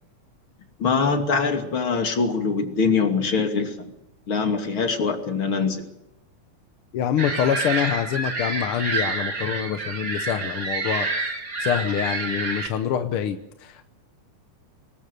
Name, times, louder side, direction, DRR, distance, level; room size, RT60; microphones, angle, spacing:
voice 1, 0.8-3.7 4.3-5.8, left 5 dB, 45° left, 4 dB, 3.3 m, -23 dB
voice 2, 6.9-13.8, left 9 dB, 65° left, 8 dB, 1.4 m, -26 dB
sound 1, 7.2-12.7, right 3 dB, 30° right, 2.3 m, -28 dB
25.5 x 20.5 x 6.8 m, 0.84 s
omnidirectional pair, 3.4 m